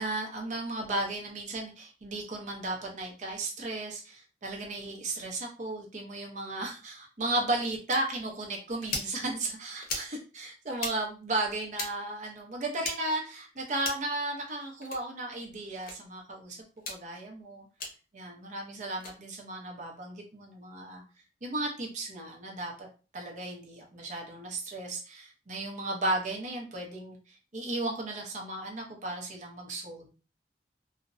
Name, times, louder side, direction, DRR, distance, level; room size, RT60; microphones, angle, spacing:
voice 1, 0.0-17.7 18.1-21.0 21.4-22.9 23.1-30.1, right 2 dB, 45° right, 0 dB, 0.6 m, -35 dB
sound 1, 7.9-8.0 8.8-9.1 9.8-10.1 10.7-10.9 11.7-11.9 12.8-13.0 13.8-14.1 14.8-15.0 15.8-16.0 16.8-17.0 17.8-17.9 18.9-19.1, left 3 dB, 55° left, 0.7 m, -36 dB
2.4 x 2.0 x 2.5 m, 0.34 s
head